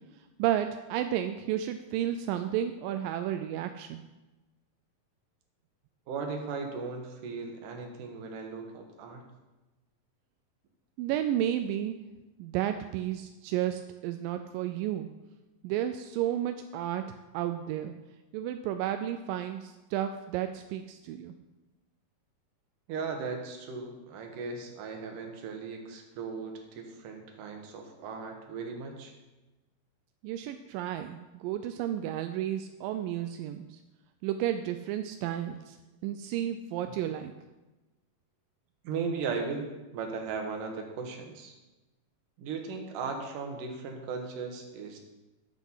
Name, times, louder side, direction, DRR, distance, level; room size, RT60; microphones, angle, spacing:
voice 1, 0.4-4.0 11.0-12.0 12.4-15.1 15.6-17.1 17.3-17.9 18.3-21.4 30.2-33.8 34.2-35.8 36.0-37.3, right 11 dB, 90° right, 8 dB, 2.3 m, -32 dB
voice 2, 6.1-9.2 22.9-29.1 38.8-41.5 42.4-45.0, right 4 dB, 70° right, 3 dB, 2.9 m, -37 dB
10.5 x 8.1 x 5.6 m, 1.1 s
omnidirectional pair, 3.9 m